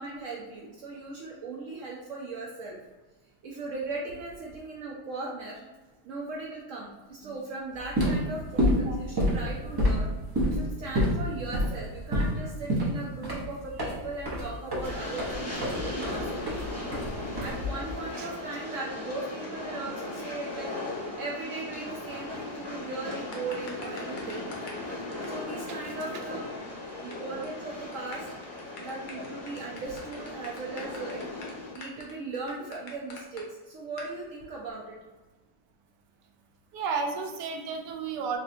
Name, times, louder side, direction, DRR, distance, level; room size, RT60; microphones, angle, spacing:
voice 1, 0.0-2.8 3.4-5.7 6.0-10.1 10.4-16.6 17.2-24.4 25.2-26.5 27.0-28.3 28.8-35.0, right 3 dB, 70° right, -3 dB, 0.8 m, -38 dB
sound 1, 7.8-18.0, equal, 25° right, 0.4 m, -28 dB
Train, 14.8-31.7, left 2 dB, 15° left, 0.7 m, -38 dB
sound 2, 23.1-24.8 25.1-25.3 25.6-25.7 25.9-26.0 26.2-26.3 26.5-27.1 27.4-27.6 27.9-33.4 34.0-34.1, left 4 dB, 70° left, 1.2 m, -45 dB
voice 2, 36.7-38.4, right 5 dB, 85° right, 4 dB, 1.2 m, -32 dB
4.0 x 2.8 x 2.6 m, 1.2 s
omnidirectional pair, 1.8 m